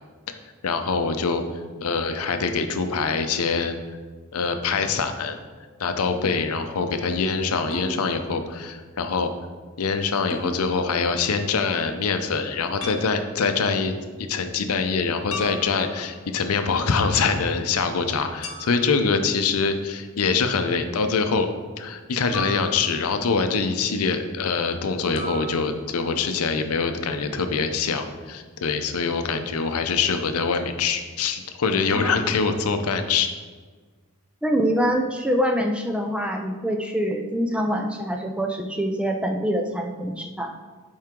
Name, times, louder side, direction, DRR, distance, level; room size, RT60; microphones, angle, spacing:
voice 1, 0.6-1.4 1.8-3.8 4.3-5.4 5.8-9.3 9.8-13.9 14.2-21.5 21.8-33.3, left 5 dB, 90° left, 7 dB, 0.6 m, -24 dB
sound 1, 7.7-7.9 10.3-10.5 12.8-13.1 15.3-16.2 18.4-19.0 22.3-23.3 25.2-25.5, left 1 dB, 70° left, 1.1 m, -35 dB
voice 2, 34.4-40.5, equal, 5° right, 3 dB, 0.4 m, -25 dB
7.4 x 4.7 x 3.7 m, 1.4 s
head